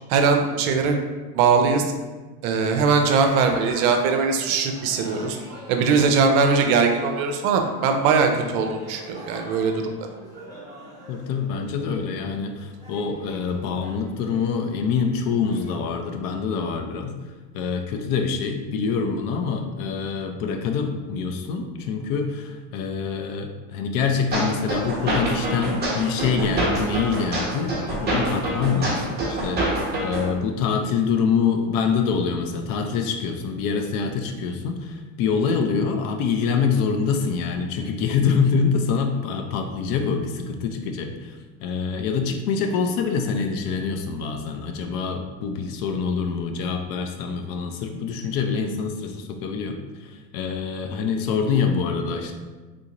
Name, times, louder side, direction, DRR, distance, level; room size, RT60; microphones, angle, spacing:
voice 1, 0.1-1.0 1.3-1.9 2.4-5.4 5.7-10.1, right 5 dB, 70° right, 5 dB, 0.6 m, -20 dB
sound 1, 3.0-15.7, right 1 dB, 10° left, 1.0 m, -43 dB
voice 2, 11.1-17.1 17.5-52.3, left 5 dB, 50° left, 6 dB, 0.5 m, -25 dB
sound 2, 24.3-30.3, right 1 dB, 20° right, 1.1 m, -26 dB
3.8 x 2.5 x 2.9 m, 1.2 s
supercardioid pair, 125°, 46 cm